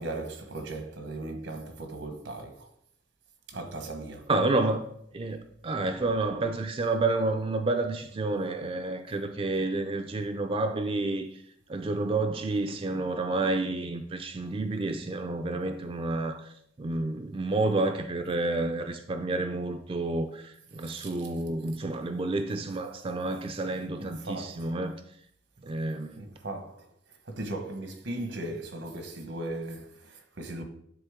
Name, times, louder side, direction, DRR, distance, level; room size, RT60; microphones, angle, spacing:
voice 1, 0.0-2.7 3.5-4.3 20.8-21.3 24.0-24.8 26.2-30.6, right 2 dB, 80° right, 1.2 m, -38 dB
voice 2, 4.3-4.9 5.1-11.4 11.7-16.5 16.8-24.9 25.6-26.2, right 2 dB, 30° right, 0.4 m, -29 dB
9.8 x 3.9 x 3.6 m
head